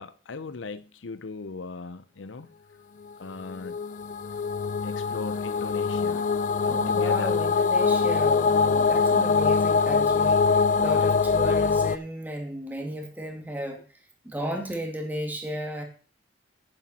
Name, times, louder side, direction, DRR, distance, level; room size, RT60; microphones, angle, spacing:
voice 1, 0.0-2.5 3.2-3.8 4.8-6.2 6.9-7.4 10.8-11.0, left 3 dB, 85° left, 0.6 m, -39 dB
sound 1, 3.5-12.0, left 5 dB, 40° left, 0.4 m, -23 dB
voice 2, 6.6-13.8 14.2-15.8, equal, 10° right, 2.3 m, -34 dB
10.5 x 10.5 x 4.3 m
head